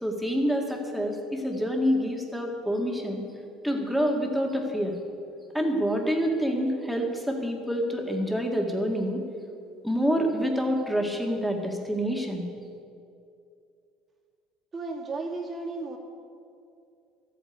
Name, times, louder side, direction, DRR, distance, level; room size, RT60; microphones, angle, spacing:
voice 1, 0.0-3.2 3.6-5.0 5.5-9.2 9.8-12.5, equal, ahead, 1 dB, 1.9 m, -27 dB
voice 2, 14.7-16.0, right 3 dB, 25° right, 0 dB, 2.3 m, -34 dB
13.5 x 8.5 x 9.2 m, 2.5 s
cardioid pair, 130°, 0 cm